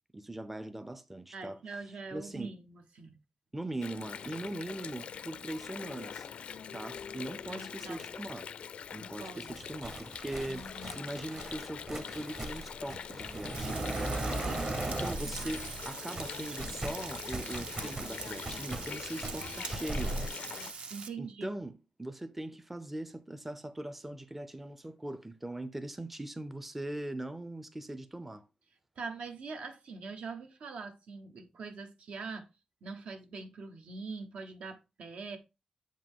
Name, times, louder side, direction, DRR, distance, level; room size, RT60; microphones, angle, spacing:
voice 1, 0.1-1.6 2.1-2.5 3.5-6.3 6.7-8.5 8.9-14.5 14.9-20.2 21.2-28.5, right 1 dB, 10° right, 0.4 m, -41 dB
voice 2, 1.3-3.2 7.5-8.1 9.0-9.6 10.4-11.0 14.4-14.9 20.9-21.5 29.0-32.5 32.8-35.4, right 4 dB, 75° right, 1.0 m, -43 dB
Water, 3.8-20.7, left 7 dB, 70° left, 0.4 m, -44 dB
sound 1, 9.5-15.9 16.1-20.3, right 2 dB, 30° right, 0.8 m, -38 dB
Frying (food), 13.5-21.1, right 5 dB, 60° right, 0.7 m, -43 dB
7.7 x 5.1 x 3.6 m
wide cardioid pair, 175°, 2 cm